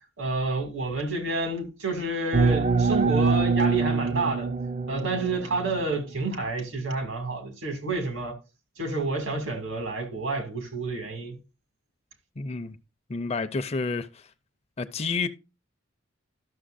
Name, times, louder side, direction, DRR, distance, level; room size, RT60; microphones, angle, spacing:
voice 1, 0.2-4.5 4.9-8.4 8.8-11.4, right 2 dB, 85° right, 2.2 m, -29 dB
sound 1, 2.3-5.8, right 4 dB, 35° right, 0.4 m, -24 dB
voice 2, 12.4-12.8 13.1-14.1 14.8-15.3, left 4 dB, 30° left, 0.5 m, -29 dB
12.5 x 6.5 x 2.5 m
head